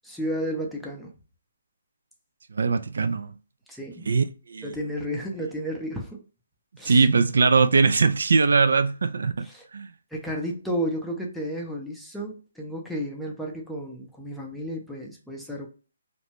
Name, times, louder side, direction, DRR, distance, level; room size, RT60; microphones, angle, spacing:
voice 1, 0.0-1.1 3.7-4.1 4.6-6.2 6.8-7.0 9.4-9.6 10.1-15.7, equal, ahead, 0.5 m, -32 dB
voice 2, 2.5-3.3 4.1-4.7 6.9-9.5 9.7-9.9, right 4 dB, 75° right, 0.3 m, -21 dB
2.6 x 2.1 x 3.0 m
hypercardioid pair, 160°, 0 cm